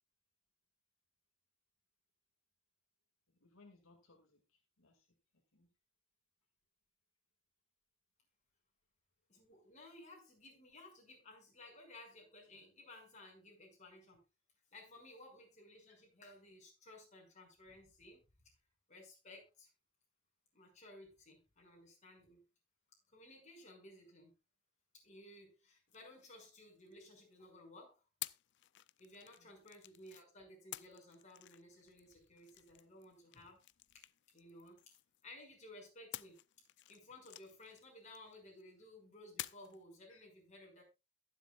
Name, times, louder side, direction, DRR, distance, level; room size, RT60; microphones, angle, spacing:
voice 1, 3.3-5.2 5.5-5.7 29.4-29.6 40.1-40.2, left 3 dB, 75° left, 2 dB, 2.3 m, -66 dB
voice 2, 9.3-14.2 14.7-18.2 18.9-19.7 20.5-22.4 23.1-24.3 25.0-27.9 29.0-33.6 34.3-34.9 35.2-36.4 36.9-40.8, left 1 dB, 35° left, 0 dB, 6.0 m, -57 dB
sound 1, 25.9-27.3 28.2-30.3 30.7-35.4 36.1-38.6 39.4-39.8, left 15 dB, 60° left, 0.5 m, -52 dB
22.0 x 7.7 x 2.4 m, 0.26 s
head